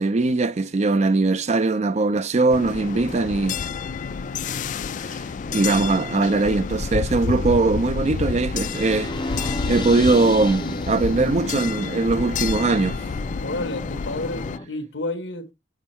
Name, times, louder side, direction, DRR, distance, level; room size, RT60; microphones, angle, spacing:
voice 1, 0.0-3.6 5.0-5.2 5.5-9.3 9.7-13.0, right 3 dB, 40° right, 0.4 m, -21 dB
sound 1, 2.5-14.6, left 5 dB, 45° left, 0.3 m, -29 dB
sound 2, 8.7-14.6, left 1 dB, 25° left, 0.9 m, -33 dB
voice 2, 13.4-15.5, left 2 dB, 75° left, 1.2 m, -30 dB
7.2 x 5.3 x 4.3 m
head